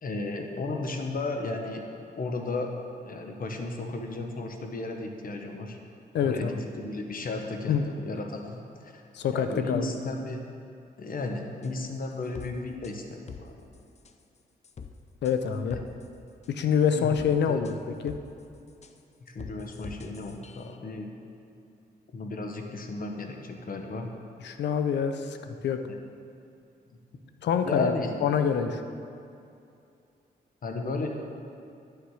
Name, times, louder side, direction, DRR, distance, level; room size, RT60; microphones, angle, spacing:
voice 1, 0.0-1.9 2.2-2.7 3.0-5.8 6.2-9.0 9.3-10.4 11.0-13.5 15.7-15.8 17.0-17.1 17.5-17.6 19.2-21.1 22.1-24.1 25.9-26.0 27.6-28.2 30.6-31.1, left 3 dB, 55° left, 3 dB, 1.2 m, -34 dB
voice 2, 6.1-6.5 7.7-7.9 9.1-9.9 15.2-15.8 16.5-17.7 18.0-18.1 24.4-25.8 27.4-27.9 28.2-28.8, left 7 dB, 80° left, 8 dB, 0.6 m, -26 dB
sound 1, 11.6-11.7 12.3-12.5 12.8-12.9 13.3-13.4 13.7-14.1 14.6-14.9 15.2-15.3 15.7-16.1 16.4-17.3 17.6-17.7 18.1-18.2 18.7-19.0 19.4-20.8, left 5 dB, 40° left, 0.6 m, -44 dB
11.0 x 6.7 x 4.9 m, 2.6 s
cardioid pair, 70°, 18 cm